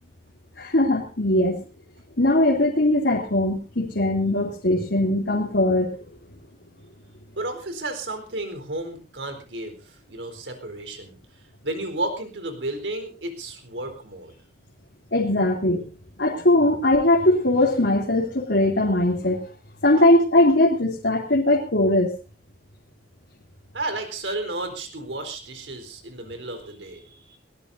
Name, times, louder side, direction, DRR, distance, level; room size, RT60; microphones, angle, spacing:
voice 1, 0.6-1.6 2.2-6.0 15.1-15.8 16.2-19.4 19.8-22.1, left 1 dB, 75° left, -2 dB, 2.9 m, -20 dB
voice 2, 7.3-11.2 11.6-14.4 23.7-27.4, right 2 dB, 90° right, 5 dB, 4.3 m, -32 dB
22.0 x 18.5 x 2.8 m, 0.35 s
head